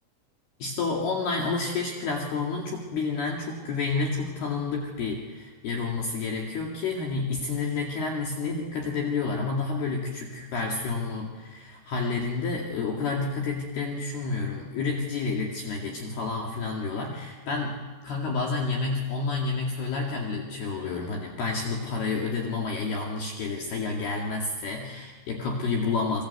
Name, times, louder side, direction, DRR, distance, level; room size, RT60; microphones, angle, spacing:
voice 1, 0.6-26.2, left 4 dB, 60° left, -1 dB, 3.9 m, -30 dB
26.0 x 25.0 x 8.2 m, 1.3 s
omnidirectional pair, 5.5 m